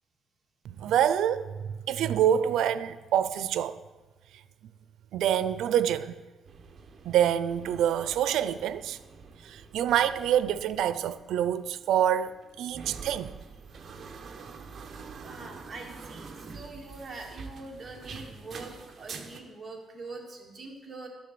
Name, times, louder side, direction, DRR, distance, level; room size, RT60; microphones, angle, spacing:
voice 1, 0.6-3.8 5.1-6.2 7.0-9.0 9.4-13.4, right 10 dB, 85° right, 0.5 m, -26 dB
sound 1, 6.4-19.4, right 5 dB, 40° right, 1.1 m, -46 dB
voice 2, 15.2-21.1, right 3 dB, 25° right, 2.4 m, -43 dB
11.5 x 7.2 x 7.7 m
cardioid pair, 140°, 0 cm